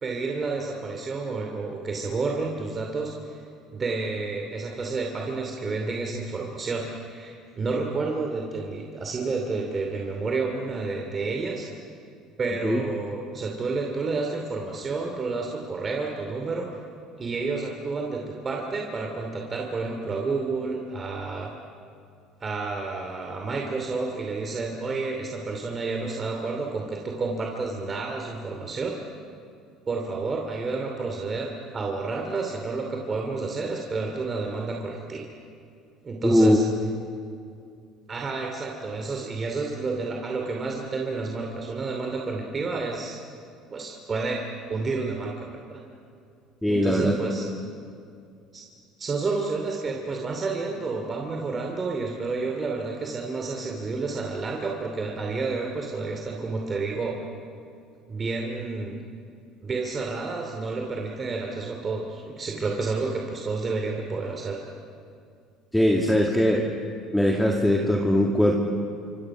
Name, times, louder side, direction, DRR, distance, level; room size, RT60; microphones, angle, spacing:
voice 1, 0.0-3.4 3.7-11.7 12.4-16.8 17.2-21.5 22.4-29.0 29.9-35.2 36.0-36.7 38.1-43.2 43.7-45.8 46.7-47.5 48.5-48.6 49.0-57.2 58.1-59.0 59.6-64.6, right 3 dB, 30° right, 1 dB, 2.7 m, -30 dB
voice 2, 36.2-36.6 46.6-47.2 65.7-66.7 67.1-68.6, equal, 5° left, 0 dB, 2.1 m, -20 dB
27.0 x 25.5 x 6.1 m, 2.4 s
cardioid pair, 110°, 0 cm